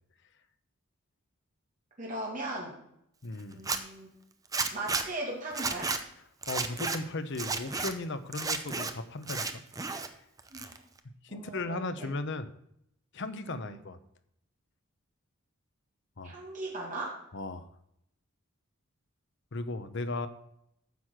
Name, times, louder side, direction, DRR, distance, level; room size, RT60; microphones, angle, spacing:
voice 1, 2.0-2.7 3.5-4.1 4.7-5.9 10.5-10.8 11.3-12.1 13.5-13.8 16.2-17.1, right 2 dB, 40° right, -3 dB, 2.3 m, -38 dB
voice 2, 3.2-3.6 6.5-9.6 11.2-12.5 13.1-14.0 16.2-16.4 17.3-17.7 19.5-20.3, left 2 dB, 55° left, 11 dB, 0.8 m, -36 dB
Zipper (clothing), 3.5-3.8 4.5-5.0 5.5-6.0 6.4-7.0 7.3-7.9 8.3-8.9 9.2-10.1 10.4-11.0, right 4 dB, 15° right, 0.6 m, -32 dB
9.4 x 6.4 x 5.8 m, 0.75 s
head